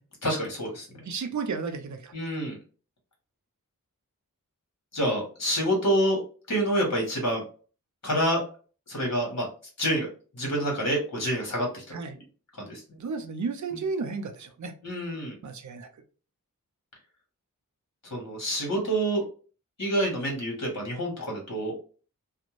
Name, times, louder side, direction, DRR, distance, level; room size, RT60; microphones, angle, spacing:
voice 1, 0.2-0.9 2.1-2.6 4.9-6.2 6.5-7.4 8.0-8.4 8.9-9.5 9.8-10.1 10.3-11.9 12.6-12.8 14.8-15.3 18.0-19.2 19.8-21.7, right 1 dB, 55° left, -1 dB, 1.2 m, -27 dB
voice 2, 1.0-2.1 11.9-12.2 13.0-14.7 15.4-15.9, right 4 dB, 60° right, 8 dB, 0.5 m, -33 dB
2.5 x 2.1 x 3.0 m, 0.38 s
wide cardioid pair, 80°, 33 cm